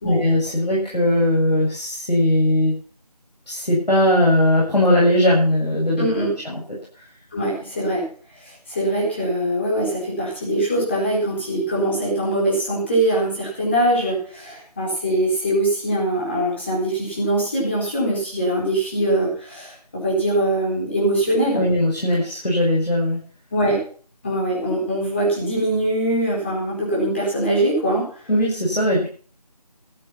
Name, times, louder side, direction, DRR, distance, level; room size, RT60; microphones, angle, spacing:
voice 1, 0.0-2.7 3.5-6.1 6.4-6.8 21.5-23.3 28.3-29.1, left 1 dB, 90° left, -4 dB, 7.3 m, -19 dB
voice 2, 6.0-6.4 7.3-8.1 8.4-21.6 23.5-23.8 24.2-28.1, right 1 dB, 15° left, -4 dB, 4.5 m, -22 dB
14.0 x 10.5 x 5.9 m, 0.42 s
figure-of-eight pair, 175°, 21 cm